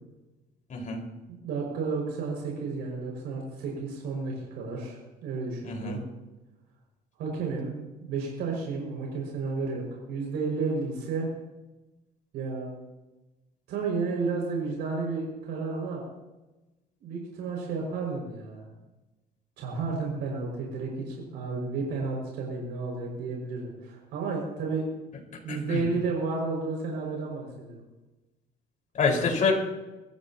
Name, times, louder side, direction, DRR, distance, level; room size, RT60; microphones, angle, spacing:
voice 1, 0.7-1.0 5.6-6.0 25.5-25.8 29.0-29.5, left 4 dB, 50° left, 0 dB, 5.0 m, -26 dB
voice 2, 1.3-6.0 7.2-11.3 12.3-12.7 13.7-16.0 17.0-18.7 19.6-24.9 25.4-27.8, right 4 dB, 90° right, -1 dB, 6.0 m, -32 dB
26.0 x 14.5 x 3.0 m, 1.1 s
cardioid pair, 110°, 17 cm